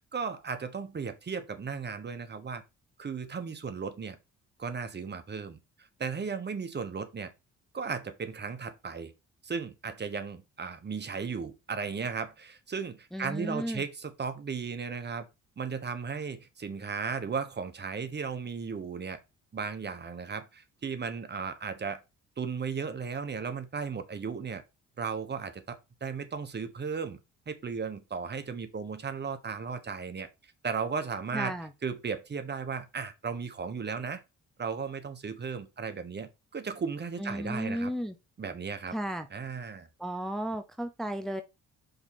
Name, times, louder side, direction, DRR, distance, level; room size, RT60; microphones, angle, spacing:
voice 1, 0.1-2.6 3.0-4.2 4.6-7.3 7.7-9.1 9.4-15.3 15.6-19.2 19.5-22.0 22.4-24.6 25.0-27.2 27.5-30.3 30.6-31.5 31.8-34.2 34.6-37.9 38.4-38.9 39.3-39.9, right 5 dB, 35° right, 1.2 m, -35 dB
voice 2, 13.1-13.9 31.3-31.7 37.2-38.1 38.9-39.3 40.0-41.4, equal, ahead, 0.7 m, -34 dB
5.4 x 4.3 x 4.2 m
cardioid pair, 90°, 30 cm